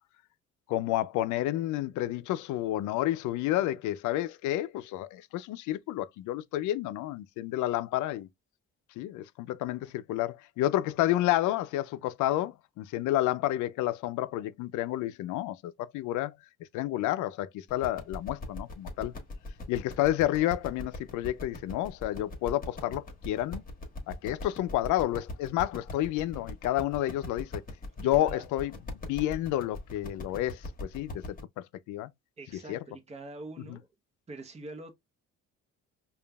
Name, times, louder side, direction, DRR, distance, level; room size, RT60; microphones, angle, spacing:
voice 1, 0.7-8.3 9.0-16.3 16.7-19.1 19.7-23.6 24.1-27.6 28.0-31.4 31.9-32.1 32.7-32.8, left 14 dB, 90° left, 0.5 m, -30 dB
sound 1, 17.7-31.4, left 2 dB, 30° left, 1.4 m, -41 dB
voice 2, 28.1-28.4 32.4-33.9 34.3-34.9, right 2 dB, 20° right, 0.9 m, -44 dB
5.1 x 2.4 x 2.3 m
cardioid pair, 115°, 29 cm